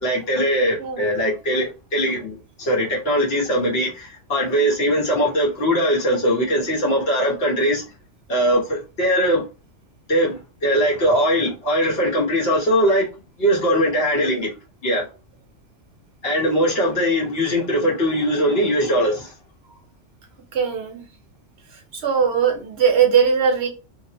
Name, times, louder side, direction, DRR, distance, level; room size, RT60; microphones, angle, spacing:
voice 1, 0.0-7.8 8.3-9.4 10.1-13.1 13.4-14.5 14.8-15.0 16.2-19.3, equal, 55° left, 1.3 m, -20 dB
voice 2, 20.5-21.1 21.9-23.7, right 7 dB, 65° right, 0.8 m, -19 dB
2.8 x 2.5 x 2.8 m
omnidirectional pair, 1.2 m